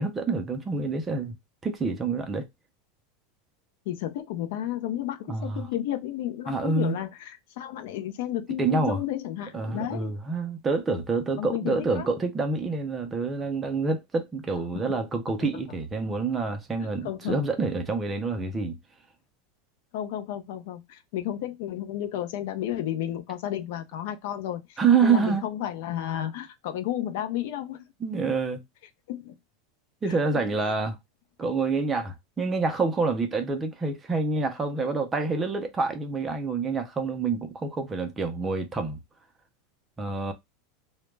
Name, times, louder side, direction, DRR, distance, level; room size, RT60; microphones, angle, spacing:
voice 1, 0.0-1.3 1.6-2.5 5.3-5.6 6.5-7.0 8.6-9.0 9.5-18.8 24.8-25.5 28.0-28.6 30.0-31.0 31.4-39.0 40.0-40.3, right 4 dB, 15° right, 0.4 m, -27 dB
voice 2, 3.9-10.1 11.4-12.1 14.7-14.8 16.8-17.4 19.9-27.8 29.1-29.3 30.0-30.2 30.6-30.7, left 11 dB, 60° left, 0.4 m, -32 dB
2.1 x 2.0 x 3.1 m
supercardioid pair, 165°, 0 cm